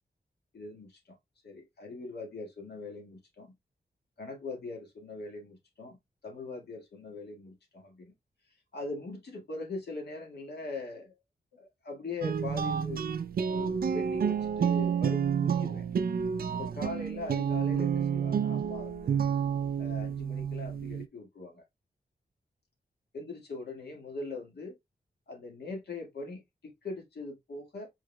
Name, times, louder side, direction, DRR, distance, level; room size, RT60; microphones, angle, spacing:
voice 1, 0.5-1.2 1.4-3.6 4.2-6.0 6.2-8.1 8.7-11.2 11.5-13.0 13.5-15.9 16.5-19.2 19.8-21.6 23.1-24.8 25.3-27.9, left 3 dB, 75° left, 1.8 m, -41 dB
sound 1, 12.2-21.1, right 7 dB, 65° right, 0.4 m, -30 dB
4.8 x 4.1 x 2.2 m
wide cardioid pair, 75°, 17 cm